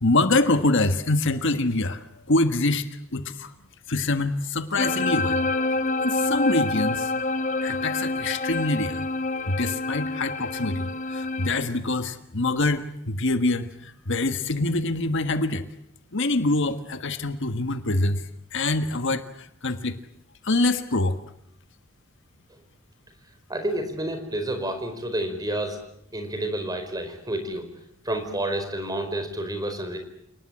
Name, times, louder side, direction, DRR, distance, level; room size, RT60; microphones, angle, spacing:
voice 1, 0.0-3.5 3.9-5.5 6.0-7.1 7.6-9.0 9.5-15.6 16.1-18.2 18.5-20.0 20.4-21.2, left 2 dB, 60° left, 9 dB, 1.5 m, -25 dB
sound 1, 4.8-11.6, left 2 dB, 40° left, 1.1 m, -27 dB
voice 2, 23.5-25.8 26.1-27.7 28.0-30.0, right 1 dB, 20° right, 7 dB, 4.7 m, -29 dB
29.0 x 19.5 x 8.7 m, 0.74 s
head